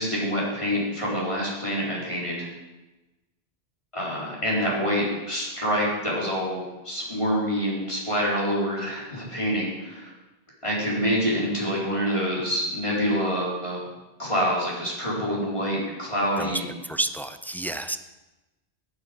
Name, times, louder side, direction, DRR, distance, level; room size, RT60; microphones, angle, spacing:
voice 1, 0.0-2.5 3.9-10.1 10.6-13.8 14.2-16.7, equal, 30° left, -6 dB, 3.9 m, -26 dB
voice 2, 16.4-18.0, right 2 dB, 5° left, 9 dB, 0.4 m, -30 dB
17.0 x 8.3 x 5.1 m, 1.1 s
omnidirectional pair, 1.1 m